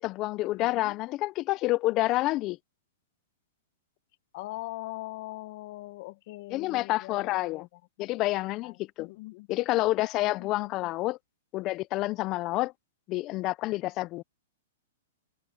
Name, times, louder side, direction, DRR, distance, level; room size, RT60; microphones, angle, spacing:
voice 1, 0.0-2.6 6.5-7.7 8.0-9.1 9.5-11.2 11.5-12.7 13.1-14.2, left 18 dB, 30° left, 0.5 m, -28 dB
voice 2, 0.6-1.0 4.3-8.1 8.6-9.5 10.4-10.9, left 19 dB, 50° left, 1.1 m, -42 dB
open air
hypercardioid pair, 145°, 0 cm